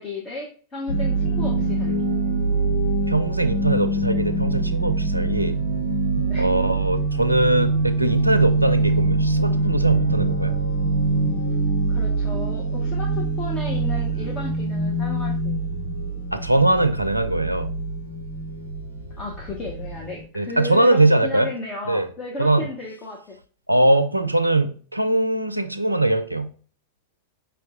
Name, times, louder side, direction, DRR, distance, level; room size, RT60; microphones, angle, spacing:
voice 1, 0.0-1.9 6.2-6.5 7.1-7.2 11.9-15.7 19.2-23.4, left 2 dB, 25° left, -1 dB, 0.8 m, -34 dB
sound 1, 0.9-20.2, right 2 dB, 75° left, 1.2 m, -24 dB
voice 2, 3.1-5.6 6.4-10.6 14.1-14.3 16.3-17.7 20.3-21.5 21.9-22.1 22.4-22.7 23.7-26.5, right 2 dB, 85° right, 9 dB, 0.4 m, -21 dB
5.3 x 2.2 x 3.6 m, 0.41 s
figure-of-eight pair, 90°, 0 cm